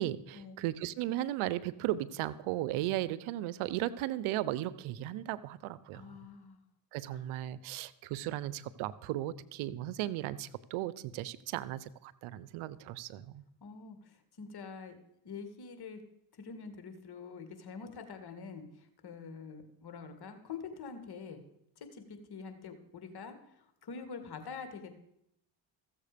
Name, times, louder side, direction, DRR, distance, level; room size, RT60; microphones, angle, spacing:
voice 1, 0.0-6.0 6.9-13.4, right 14 dB, 75° right, 18 dB, 0.7 m, -36 dB
voice 2, 5.9-6.6 7.1-7.2 13.6-14.9 15.2-16.0 16.3-21.4 21.8-24.9, left 5 dB, 50° left, 7 dB, 2.2 m, -46 dB
15.0 x 7.4 x 5.1 m, 0.77 s
supercardioid pair, 65°, 49 cm